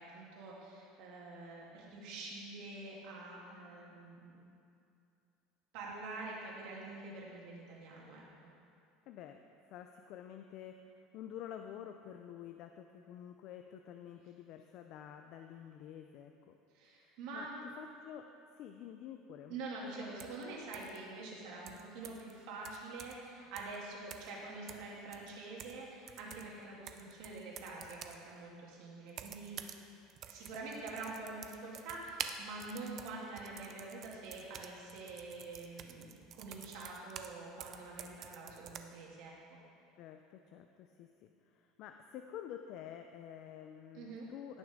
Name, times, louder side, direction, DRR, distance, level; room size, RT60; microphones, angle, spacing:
voice 1, 0.0-4.4 5.7-8.2 16.7-17.6 19.5-29.6 30.3-39.6 43.9-44.3, right 3 dB, 65° right, -4 dB, 2.6 m, -46 dB
voice 2, 9.1-9.4 9.7-10.9 11.1-16.6 17.0-17.5 17.8-18.3 18.6-19.6 40.0-44.6, left 10 dB, 50° left, 5 dB, 0.4 m, -49 dB
sound 1, 20.2-20.4 20.7-21.0 21.7-22.3 22.6-23.3 23.6-23.8 24.1-24.4 24.7-25.8 26.1-28.2 29.1-29.8 30.1-37.3 37.6-38.8, right 9 dB, 40° right, 0.5 m, -49 dB
17.5 x 6.2 x 3.7 m, 2.5 s
cardioid pair, 150°, 0 cm